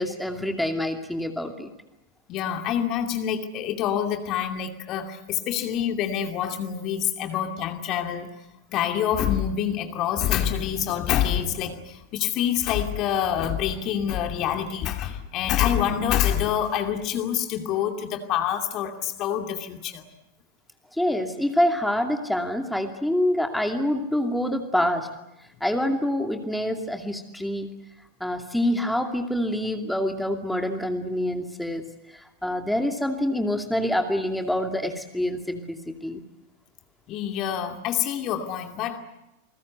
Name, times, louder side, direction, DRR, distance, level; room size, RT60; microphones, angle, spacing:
voice 1, 0.0-1.7 21.0-25.1 25.6-27.7 28.2-31.8 32.4-36.2, left 1 dB, ahead, 4 dB, 2.5 m, -26 dB
voice 2, 2.3-8.3 8.7-20.1 37.1-39.0, left 10 dB, 35° left, 5 dB, 2.6 m, -26 dB
28.5 x 21.0 x 8.0 m, 0.91 s
figure-of-eight pair, 90°, 0 cm